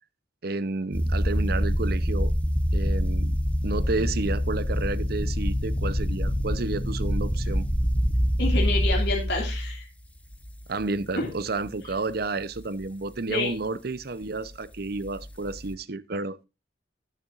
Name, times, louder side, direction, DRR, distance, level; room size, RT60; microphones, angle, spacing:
voice 1, 0.4-2.3 2.7-3.4 3.6-7.7 10.7-16.4, right 3 dB, 55° right, 0.7 m, -31 dB
sound 1, 0.9-9.7 10.4-10.8 11.4-11.5 15.1-15.7, equal, 5° left, 1.0 m, -25 dB
voice 2, 8.4-9.9 11.2-11.3 13.3-13.5, left 3 dB, 60° left, 2.4 m, -28 dB
18.5 x 6.8 x 2.5 m
head